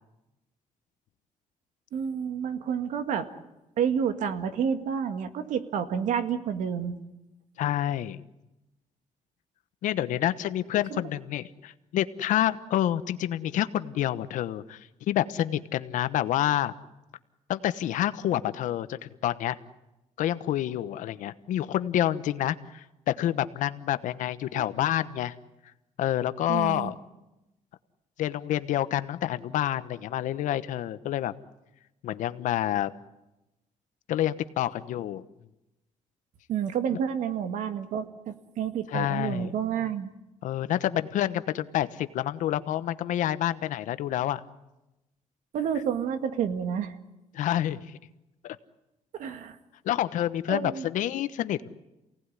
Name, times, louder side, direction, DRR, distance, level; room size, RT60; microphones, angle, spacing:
voice 1, 1.9-3.3 3.8-7.0 10.9-11.0 24.5-24.6 26.5-26.9 36.5-40.1 45.5-46.9 49.1-49.6 50.5-50.9, right 8 dB, 80° right, 9 dB, 2.0 m, -29 dB
voice 2, 7.6-8.2 9.8-16.7 17.5-19.6 20.2-25.3 26.0-27.0 28.2-31.3 32.0-32.9 34.1-35.2 38.9-39.5 40.4-44.4 47.3-47.9 48.4-48.6 49.8-51.7, left 12 dB, 85° left, 13 dB, 1.1 m, -28 dB
28.0 x 18.0 x 9.8 m, 0.96 s
cardioid pair, 140°, 13 cm